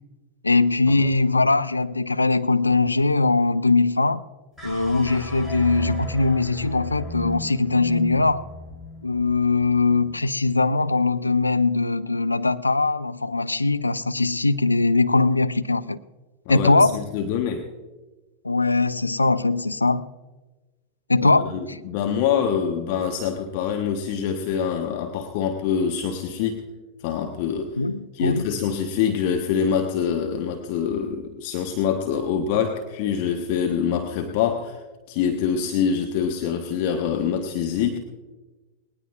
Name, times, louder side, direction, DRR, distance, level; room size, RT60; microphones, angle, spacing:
voice 1, 0.4-4.2 4.6-8.5 9.0-16.0 16.5-17.0 18.4-20.1 21.1-21.8 27.8-28.5, left 3 dB, 80° left, 13 dB, 0.4 m, -21 dB
sound 1, 4.6-10.9, left 2 dB, 5° right, 3.5 m, -35 dB
voice 2, 16.5-17.7 21.2-26.6 27.0-27.8 28.1-34.8 35.1-38.0, left 7 dB, 45° left, 4 dB, 1.1 m, -25 dB
20.0 x 18.5 x 2.5 m, 1.2 s
figure-of-eight pair, 90°, 0 cm